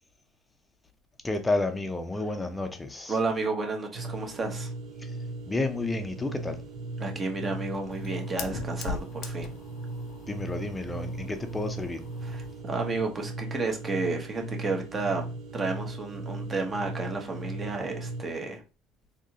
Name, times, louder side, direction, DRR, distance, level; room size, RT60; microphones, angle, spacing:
voice 1, 1.2-3.1 5.5-6.6 10.3-12.0, left 2 dB, 10° left, 0.6 m, -30 dB
voice 2, 3.1-4.7 7.0-9.5 12.2-18.6, right 3 dB, 25° right, 0.9 m, -32 dB
sound 1, 3.9-18.2, right 2 dB, 60° right, 1.2 m, -37 dB
Fire, 6.5-12.6, left 5 dB, 60° left, 0.5 m, -42 dB
3.9 x 2.8 x 2.8 m
cardioid pair, 135°, 0 cm